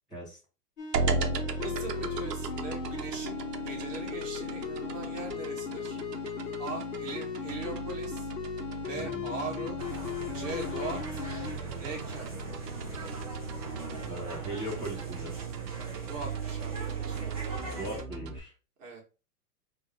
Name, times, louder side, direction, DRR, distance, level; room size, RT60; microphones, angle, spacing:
sound 1, 0.8-11.5, left 8 dB, 55° left, 1.3 m, -37 dB
sound 2, 0.9-18.4, right 4 dB, 90° right, 0.9 m, -37 dB
voice 1, 1.6-6.0 6.6-8.3 8.8-9.8 10.3-11.2 11.8-12.3 16.1-17.6 18.8-19.0, right 3 dB, 55° right, 0 dB, 1.8 m, -40 dB
sound 3, 9.8-18.0, right 2 dB, 25° right, 0.7 m, -42 dB
voice 2, 14.1-15.3 17.8-18.5, right 1 dB, ahead, -10 dB, 1.8 m, -39 dB
3.5 x 2.9 x 3.6 m, 0.31 s
hypercardioid pair, 175°, 47 cm